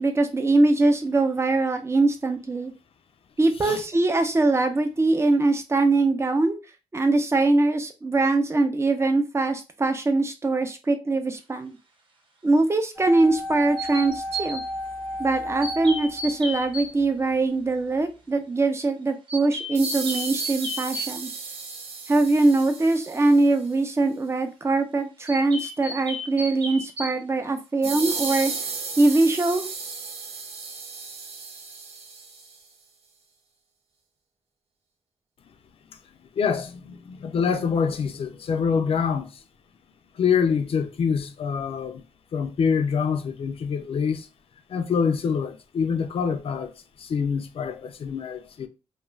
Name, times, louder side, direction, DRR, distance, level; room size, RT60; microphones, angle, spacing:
voice 1, 0.0-2.7 3.4-6.6 6.9-11.8 12.4-14.6 15.2-21.3 22.1-28.5 29.0-29.7, right 2 dB, 25° right, 0.5 m, -22 dB
sound 1, 13.0-17.1 17.3-17.4, left 1 dB, 20° left, 0.6 m, -33 dB
sound 2, 13.8-14.7 15.6-16.9 19.3-21.1 25.3-27.2, equal, 55° right, 0.9 m, -33 dB
sound 3, 19.8-23.6 27.8-32.6, right 4 dB, 90° right, 0.6 m, -34 dB
voice 2, 36.4-39.4 40.1-42.0 42.3-44.3 44.7-46.7 47.0-48.7, left 6 dB, 65° left, 0.4 m, -25 dB
2.4 x 2.2 x 3.1 m
cardioid pair, 90°, 10 cm